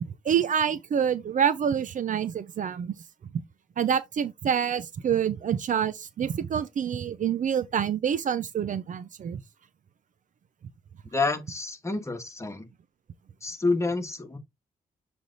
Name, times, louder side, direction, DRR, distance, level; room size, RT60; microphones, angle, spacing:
voice 1, 0.2-2.9 3.8-9.4, right 8 dB, 55° right, 0.6 m, -27 dB
voice 2, 11.1-12.7 13.4-14.4, left 3 dB, 20° left, 1.6 m, -28 dB
7.5 x 3.4 x 4.0 m
cardioid pair, 90°, 15 cm